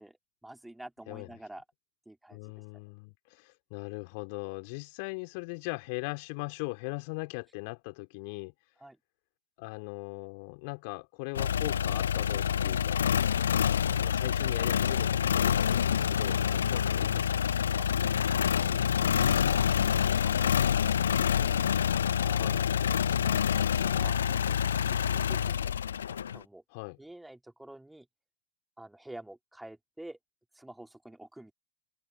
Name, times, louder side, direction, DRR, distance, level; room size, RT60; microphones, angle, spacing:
voice 1, 0.0-1.6 2.1-2.8 8.8-9.0 16.4-16.6 17.8-17.9 18.5-21.1 21.4-21.7 22.2-22.6 22.9-25.8 26.1-26.6 27.0-28.1 28.8-30.2 30.5-31.5, right 1 dB, 5° right, 4.0 m, -49 dB
voice 2, 2.3-8.5 9.6-13.0 14.0-17.3 22.3-22.6 26.7-27.0, left 32 dB, 45° left, 4.6 m, -39 dB
sound 1, 11.4-26.4, left 8 dB, 65° left, 1.3 m, -27 dB
figure-of-eight pair, 90°, 0 cm